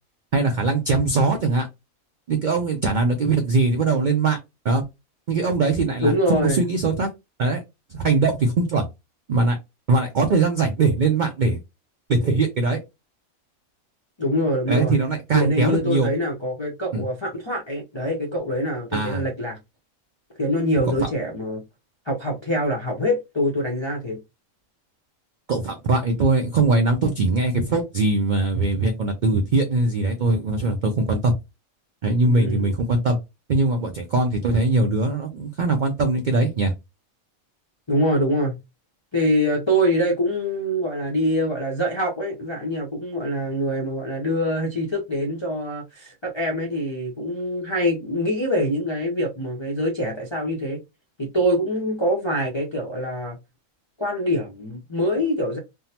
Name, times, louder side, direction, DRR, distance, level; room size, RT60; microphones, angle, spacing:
voice 1, 0.3-1.7 2.3-4.4 4.6-4.8 5.3-7.1 7.4-7.6 7.9-8.9 9.3-9.6 9.9-11.6 12.1-12.8 14.7-16.1 16.9-17.0 18.9-19.2 25.5-31.3 32.0-33.2 33.5-36.7, right 3 dB, 75° right, 0.4 m, -21 dB
voice 2, 6.0-6.6 14.2-15.0 15.3-19.6 20.4-21.6 22.1-24.2 32.2-32.8 37.9-38.6 39.1-50.8 51.2-53.4 54.0-55.6, equal, 40° left, 0.4 m, -24 dB
3.5 x 2.0 x 2.8 m
omnidirectional pair, 1.5 m